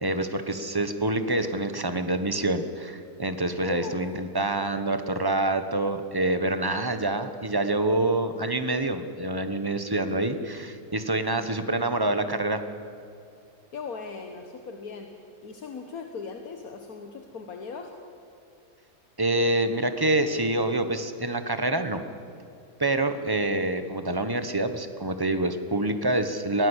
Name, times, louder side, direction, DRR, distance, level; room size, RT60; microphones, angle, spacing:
voice 1, 0.0-12.6 19.2-22.0 22.8-26.7, right 2 dB, 15° right, 9 dB, 1.1 m, -26 dB
voice 2, 3.6-4.0 13.7-15.1 15.4-17.9, left 5 dB, 75° left, 4 dB, 1.8 m, -38 dB
22.0 x 17.0 x 8.2 m, 2.5 s
omnidirectional pair, 1.5 m